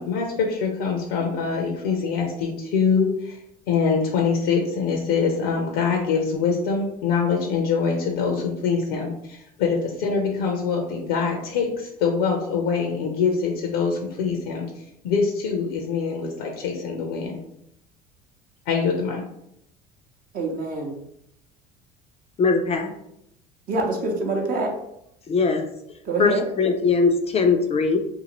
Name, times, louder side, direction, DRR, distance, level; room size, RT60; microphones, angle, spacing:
voice 1, 0.0-3.4 3.7-14.7 15.0-17.4 18.7-19.3, left 5 dB, 80° left, 1 dB, 0.6 m, -24 dB
voice 2, 20.3-20.9 23.7-24.7 26.1-26.4, right 3 dB, 50° right, 1 dB, 0.7 m, -25 dB
voice 3, 22.4-22.9 25.3-25.7 26.2-28.0, left 4 dB, 35° left, 4 dB, 0.4 m, -20 dB
2.6 x 2.5 x 2.9 m, 0.78 s
supercardioid pair, 85°, 19 cm